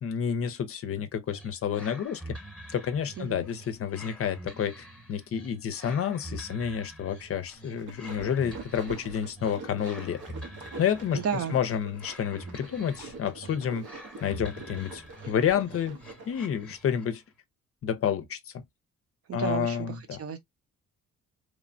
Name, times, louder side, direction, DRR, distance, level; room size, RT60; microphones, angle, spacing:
voice 1, 0.0-2.4 2.7-10.2 10.8-11.2 11.5-13.9 14.2-16.0 16.3-17.2 17.8-18.4 19.3-20.2, left 8 dB, 50° left, 0.5 m, -29 dB
sound 1, 1.3-17.2, right 1 dB, 5° left, 0.9 m, -46 dB
sound 2, 7.5-16.4, right 3 dB, 85° right, 1.1 m, -45 dB
voice 2, 11.1-11.6 19.3-20.4, right 8 dB, 50° right, 0.7 m, -32 dB
3.1 x 2.1 x 2.5 m
cardioid pair, 90°, 30 cm